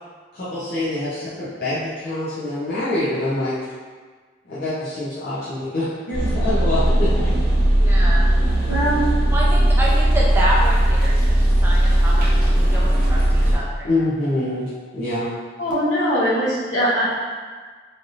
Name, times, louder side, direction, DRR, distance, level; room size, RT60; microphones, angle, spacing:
voice 1, 0.3-3.6 4.4-7.3 13.8-15.3, left 1 dB, 55° left, -11 dB, 0.7 m, -25 dB
sound 1, 6.1-13.5, right 1 dB, 50° right, 0.8 m, -17 dB
voice 2, 7.8-8.3 9.3-13.9, right 1 dB, 10° right, -6 dB, 0.5 m, -27 dB
voice 3, 8.7-9.0 15.6-17.1, equal, 75° left, -7 dB, 1.0 m, -21 dB
3.2 x 2.7 x 2.5 m, 1.5 s
head